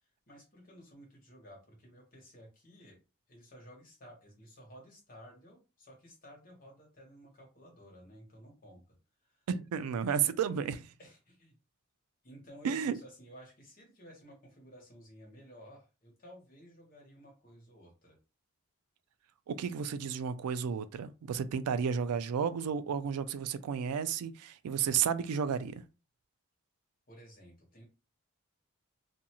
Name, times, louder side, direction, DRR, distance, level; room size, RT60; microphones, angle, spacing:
voice 1, 0.0-3.0 3.3-8.8 9.2-9.4 11.0-11.6 12.2-18.2 27.1-27.8, equal, 40° left, 1.1 m, -55 dB
voice 2, 9.5-10.9 12.6-13.0 19.5-25.8, right 7 dB, 90° right, 0.3 m, -32 dB
2.5 x 2.3 x 2.9 m
head